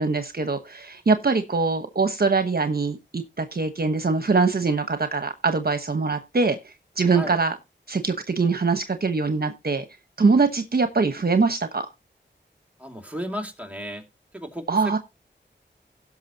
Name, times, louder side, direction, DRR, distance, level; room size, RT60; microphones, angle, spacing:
voice 1, 0.0-6.6 7.0-7.5 7.9-9.8 10.2-11.8 14.7-15.0, right 4 dB, 55° right, 1.1 m, -23 dB
voice 2, 12.8-14.0 14.3-15.0, equal, 5° right, 2.4 m, -34 dB
17.0 x 6.3 x 2.8 m
wide cardioid pair, 60°, 19 cm